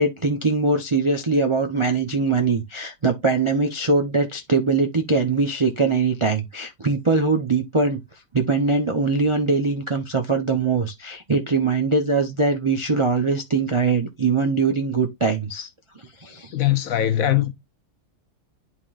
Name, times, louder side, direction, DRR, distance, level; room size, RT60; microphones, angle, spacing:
voice 1, 0.0-8.0 8.3-15.7 16.0-16.6, right 3 dB, 45° right, 0.4 m, -22 dB
voice 2, 16.5-17.5, left 12 dB, 65° left, 1.0 m, -20 dB
11.0 x 3.8 x 2.4 m
omnidirectional pair, 1.8 m